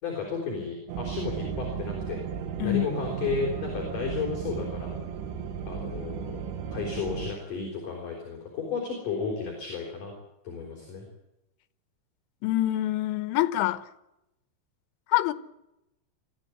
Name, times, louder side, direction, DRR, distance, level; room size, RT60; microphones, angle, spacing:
voice 1, 0.0-2.2 2.6-4.9 5.6-6.4 6.7-10.1 10.4-11.1, left 4 dB, 45° left, 5.8 m, -33 dB
sound 1, 0.9-7.3, right 7 dB, 85° right, 4.3 m, -35 dB
voice 2, 2.6-2.9 12.4-13.9 15.1-15.3, left 15 dB, 80° left, 3.4 m, -25 dB
24.5 x 15.0 x 9.8 m
omnidirectional pair, 5.7 m